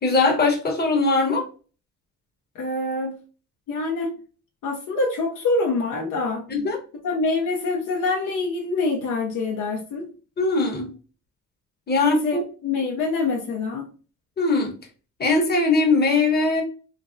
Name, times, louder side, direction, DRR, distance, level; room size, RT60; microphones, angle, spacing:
voice 1, 0.0-1.4 6.5-6.8 10.4-10.9 11.9-12.4 14.4-14.7 15.2-16.6, left 3 dB, 30° left, 1.0 m, -20 dB
voice 2, 2.5-3.2 3.7-4.1 4.6-6.5 7.0-10.1 12.0-13.9, left 3 dB, 65° left, 0.7 m, -25 dB
3.2 x 2.1 x 2.6 m
cardioid pair, 85°, 33 cm